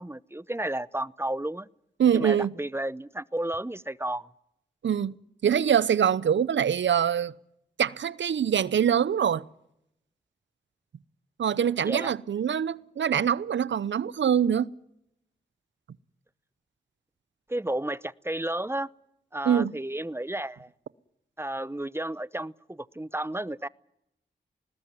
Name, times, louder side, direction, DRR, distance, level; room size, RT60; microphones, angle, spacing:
voice 1, 0.0-1.7 2.1-4.3 11.8-12.1 17.5-18.9 19.3-20.7 21.4-23.7, right 1 dB, 15° right, 0.8 m, -32 dB
voice 2, 2.0-2.5 4.8-5.2 5.4-7.3 7.8-9.4 11.4-14.7 19.5-19.7, right 8 dB, 80° right, 0.8 m, -24 dB
21.0 x 19.5 x 9.5 m
cardioid pair, 45°, 19 cm